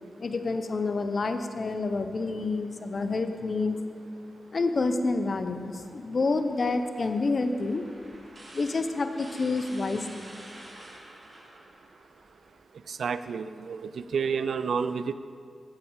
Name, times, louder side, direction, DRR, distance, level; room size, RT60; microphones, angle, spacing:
voice 1, 0.2-3.8 4.5-7.8 8.5-10.3, left 3 dB, 55° left, 8 dB, 0.7 m, -28 dB
sound 1, 6.1-12.6, right 1 dB, 45° right, 1.9 m, -50 dB
voice 2, 12.9-15.1, right 6 dB, 75° right, 12 dB, 0.3 m, -30 dB
8.2 x 7.9 x 4.7 m, 2.2 s
supercardioid pair, 40°, 0 cm